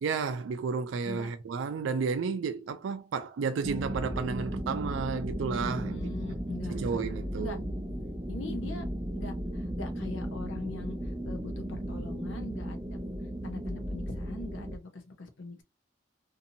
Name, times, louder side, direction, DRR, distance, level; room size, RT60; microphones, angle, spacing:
voice 1, 0.0-6.0 6.3-6.4 6.7-7.6, right 5 dB, 75° right, 0.4 m, -32 dB
sound 1, 3.6-14.8, right 1 dB, 10° right, 0.5 m, -35 dB
voice 2, 5.6-7.0 7.4-7.6 8.3-8.9 9.1-13.0 13.4-15.6, left 2 dB, 75° left, 0.7 m, -42 dB
2.7 x 2.6 x 2.6 m
head